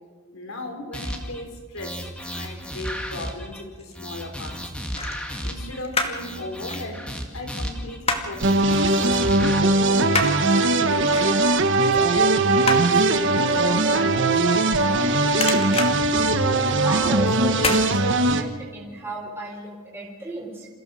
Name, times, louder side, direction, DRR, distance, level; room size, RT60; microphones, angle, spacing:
voice 1, 0.3-2.1 2.3-4.6 5.4-7.1 7.3-10.1 10.4-11.4 11.8-12.7 13.1-14.3, left 1 dB, 70° left, 4 dB, 4.1 m, -36 dB
sound 1, 0.9-1.4 1.8-3.6 3.9-5.8 6.1-8.0 8.3-9.6, equal, 5° left, 2.0 m, -33 dB
sound 2, 3.5-4.1 4.9-6.3 6.6-8.5 8.8-9.0 9.3-15.0 15.3-16.9 17.5-17.9 18.3-18.4, left 3 dB, 25° left, 2.1 m, -29 dB
sound 3, 8.4-18.4, right 2 dB, 55° right, 1.4 m, -20 dB
voice 2, 16.8-20.7, right 2 dB, 10° right, -3 dB, 3.9 m, -34 dB
28.5 x 15.5 x 6.4 m, 1.5 s
head